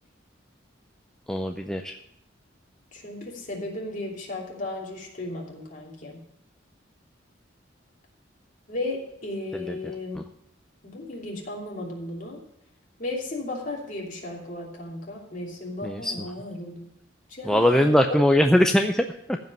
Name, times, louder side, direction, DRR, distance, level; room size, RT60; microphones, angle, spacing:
voice 1, 1.3-2.0 9.7-9.8 10.2-10.3 15.8-16.1 17.5-19.4, left 1 dB, 5° left, 4 dB, 0.4 m, -21 dB
voice 2, 2.9-6.2 8.7-10.2 10.8-12.4 13.0-16.9 17.3-18.2, left 2 dB, 40° left, -2 dB, 3.0 m, -35 dB
14.5 x 5.4 x 7.3 m, 0.75 s
head